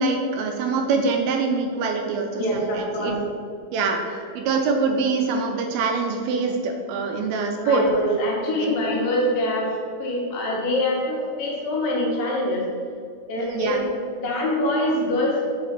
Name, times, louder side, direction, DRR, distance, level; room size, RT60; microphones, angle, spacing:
voice 1, 0.0-3.2 3.7-7.8 8.6-8.7 13.4-13.8, right 4 dB, 80° right, 3 dB, 2.4 m, -24 dB
voice 2, 2.4-3.1 4.1-4.2 7.6-12.6 13.3-13.8 14.2-15.4, left 1 dB, 70° left, -3 dB, 2.6 m, -24 dB
5.4 x 5.2 x 5.7 m, 2.2 s
omnidirectional pair, 4.5 m